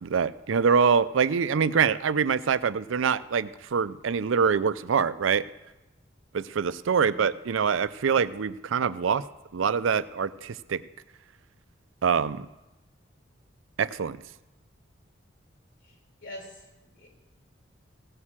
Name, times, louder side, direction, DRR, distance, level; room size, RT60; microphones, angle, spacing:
voice 1, 0.0-5.4 6.3-9.2 9.5-10.8 12.0-12.5 13.8-14.2, right 6 dB, 80° right, 16 dB, 0.5 m, -25 dB
voice 2, 6.9-7.3 15.8-17.1, left 1 dB, 60° left, 0 dB, 4.1 m, -46 dB
16.5 x 6.4 x 7.3 m, 1.0 s
head